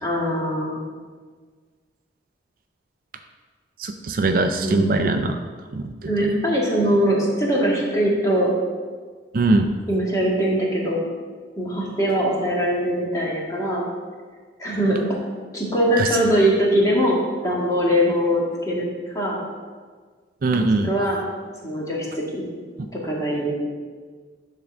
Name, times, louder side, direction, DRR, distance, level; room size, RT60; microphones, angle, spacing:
voice 1, 0.0-0.8 4.6-5.3 6.1-8.5 9.9-11.0 11.6-13.8 14.6-15.0 15.5-18.9 19.1-19.4 20.5-21.2 21.6-22.1 22.3-22.5 22.9-23.6, equal, 20° left, -4 dB, 1.7 m, -22 dB
voice 2, 3.8-5.3 5.7-5.8 9.3-9.7 16.0-16.1 20.4-20.9, right 2 dB, 50° right, 6 dB, 0.4 m, -20 dB
10.5 x 3.7 x 6.1 m, 1.5 s
head